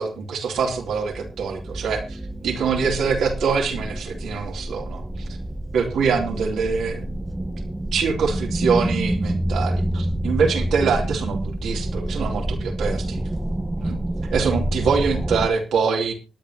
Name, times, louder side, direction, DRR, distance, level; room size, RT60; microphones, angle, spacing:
voice 1, 0.0-5.3 5.7-7.1 7.9-13.2 13.8-14.0 14.3-16.1, right 5 dB, 80° right, 2 dB, 2.7 m, -24 dB
sound 1, 0.6-15.5, right 1 dB, 20° right, 1.1 m, -28 dB
25.5 x 8.9 x 2.8 m, 0.30 s
supercardioid pair, 45°, 0 cm